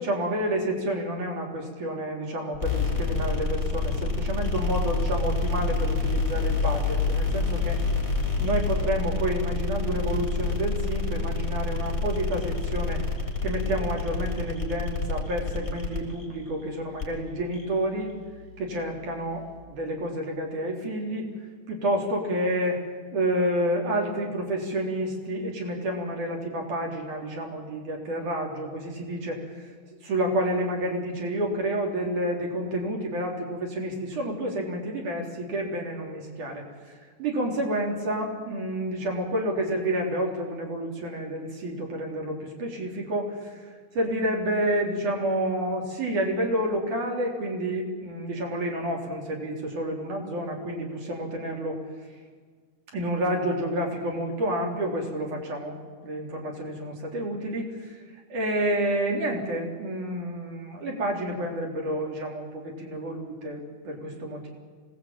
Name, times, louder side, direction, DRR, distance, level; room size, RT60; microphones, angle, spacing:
voice 1, 0.0-7.8 8.4-13.0 13.4-18.1 18.6-21.3 21.7-22.8 23.1-29.6 30.0-43.6 43.9-51.8 52.9-58.0 58.3-64.5, right 1 dB, 75° right, 0 dB, 5.4 m, -29 dB
sound 1, 2.5-19.6, left 3 dB, 10° left, 5.5 m, -28 dB
26.0 x 19.0 x 9.1 m, 1.5 s
omnidirectional pair, 3.6 m